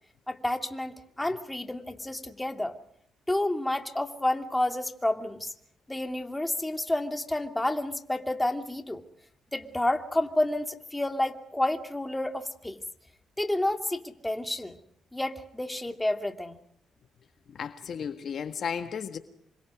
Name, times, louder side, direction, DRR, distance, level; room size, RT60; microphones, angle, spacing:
voice 1, 0.3-2.7 3.3-5.5 5.9-9.0 9.5-12.8 13.4-14.8 15.1-16.6, left 1 dB, 10° left, 2.7 m, -30 dB
voice 2, 17.5-19.2, left 7 dB, 60° left, 1.6 m, -34 dB
28.0 x 25.0 x 5.0 m
cardioid pair, 85°, 0 cm